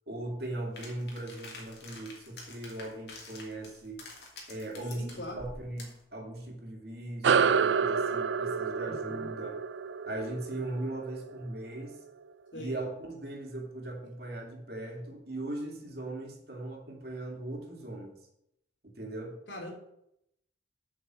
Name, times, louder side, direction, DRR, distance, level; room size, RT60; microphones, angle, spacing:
voice 1, 0.1-4.0 4.5-9.6 10.1-12.0 12.5-18.2 19.0-19.4, right 1 dB, 60° right, 0 dB, 2.5 m, -39 dB
sound 1, 0.8-6.0, left 2 dB, 60° left, 2.6 m, -48 dB
voice 2, 4.9-5.4 8.9-9.3 12.5-12.8 19.5-19.7, left 1 dB, 80° left, 1 dB, 2.9 m, -42 dB
sound 2, 7.2-12.1, right 6 dB, 85° right, 0.4 m, -29 dB
8.0 x 5.9 x 7.5 m, 0.79 s
head